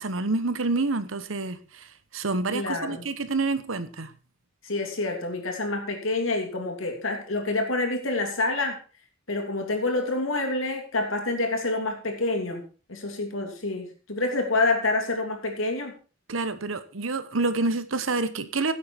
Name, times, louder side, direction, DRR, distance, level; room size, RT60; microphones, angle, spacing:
voice 1, 0.0-1.9 2.1-4.1 16.3-18.7, right 3 dB, 80° right, 12 dB, 1.2 m, -28 dB
voice 2, 2.5-3.1 4.6-8.8 9.3-12.6 12.9-15.9, left 2 dB, 80° left, 4 dB, 3.0 m, -27 dB
15.5 x 7.9 x 4.5 m, 0.35 s
head